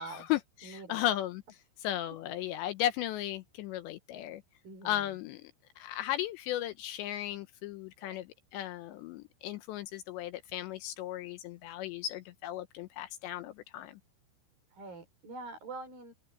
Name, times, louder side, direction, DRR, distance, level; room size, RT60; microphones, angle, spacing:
voice 1, 0.0-1.4 1.8-4.4 4.8-5.5 5.8-14.0, left 13 dB, 75° left, 2.9 m, -36 dB
voice 2, 0.6-1.0 4.6-5.2 8.0-8.2 14.7-16.1, right 3 dB, 50° right, 7.3 m, -45 dB
open air
omnidirectional pair, 5.5 m